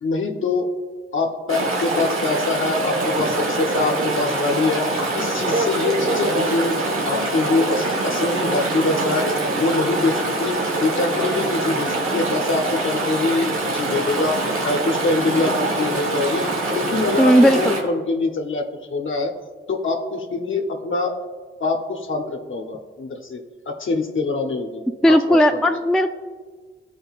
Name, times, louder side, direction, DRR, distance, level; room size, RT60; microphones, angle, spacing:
voice 1, 0.0-0.7 1.1-4.9 5.1-6.8 7.0-9.2 9.6-10.6 10.8-16.4 16.7-19.3 19.7-21.2 21.6-23.4 23.7-25.6, left 3 dB, 70° left, 3 dB, 0.9 m, -24 dB
Chatter / Stream, 1.5-17.8, right 2 dB, 85° right, 1.2 m, -24 dB
voice 2, 17.2-17.7 25.0-26.1, equal, ahead, 6 dB, 0.4 m, -15 dB
13.5 x 5.0 x 2.4 m, 1.5 s
cardioid pair, 55°, 21 cm